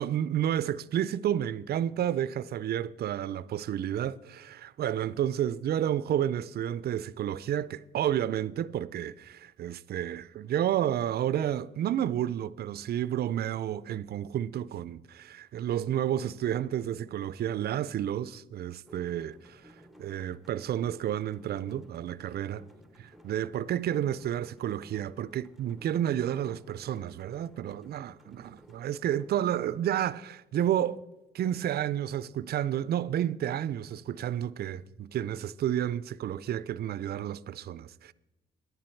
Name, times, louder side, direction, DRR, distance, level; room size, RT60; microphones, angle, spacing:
voice 1, 0.0-22.7 23.0-31.0 31.3-38.1, right 11 dB, 55° right, 0.4 m, -31 dB
sound 1, 18.8-29.6, equal, ahead, 0.6 m, -56 dB
10.5 x 10.5 x 4.5 m
cardioid pair, 90°, 20 cm